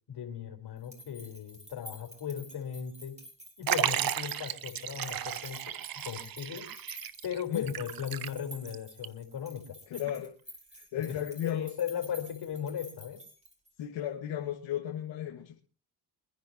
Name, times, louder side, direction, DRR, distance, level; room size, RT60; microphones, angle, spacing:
voice 1, 0.1-3.2 3.6-6.7 7.2-10.0 10.9-11.0 11.4-13.2, left 8 dB, 60° left, 4 dB, 4.4 m, -37 dB
sound 1, 0.8-13.8, right 1 dB, 15° right, 6.4 m, -50 dB
Liquid, 3.7-8.7 9.0-9.1 10.1-10.2, right 11 dB, 50° right, 0.9 m, -34 dB
voice 2, 9.9-10.3 10.7-11.7 13.8-15.6, left 11 dB, 75° left, 1 dB, 1.9 m, -35 dB
26.0 x 10.5 x 3.0 m, 0.38 s
cardioid pair, 90°, 45 cm